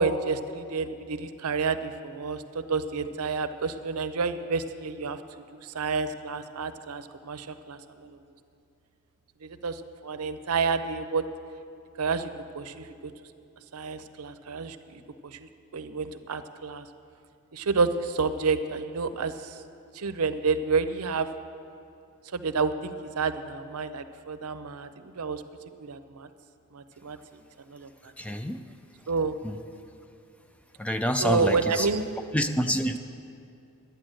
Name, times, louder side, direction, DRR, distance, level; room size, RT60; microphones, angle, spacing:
voice 1, 0.0-5.2 5.5-8.2 9.4-11.2 12.0-12.9 13.7-16.8 17.5-19.6 19.9-21.3 22.3-25.4 25.8-26.3 26.7-27.4 27.7-28.1 29.1-29.3 31.2-32.1, right 4 dB, 80° right, 11 dB, 0.6 m, -29 dB
voice 2, 28.2-28.6 29.4-29.6 30.8-31.9 32.3-33.0, equal, 5° left, 8 dB, 0.3 m, -27 dB
11.5 x 9.3 x 7.6 m, 2.5 s
head